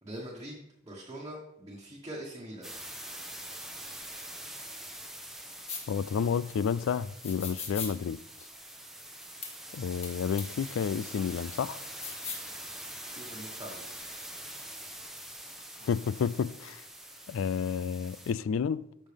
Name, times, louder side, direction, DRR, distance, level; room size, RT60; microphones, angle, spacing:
voice 1, 0.0-2.7 13.1-13.9, right 1 dB, 20° right, 1.3 m, -43 dB
sound 1, 2.6-18.3, right 1 dB, ahead, 0.8 m, -44 dB
sound 2, 5.7-5.8 7.2-7.9 9.4-9.5 10.0-10.1 10.4-10.5 11.8-12.5, left 5 dB, 35° left, 1.6 m, -38 dB
voice 2, 5.9-8.2 9.7-11.8 15.8-16.8 17.3-18.8, left 7 dB, 90° left, 0.3 m, -30 dB
13.5 x 5.6 x 3.5 m
head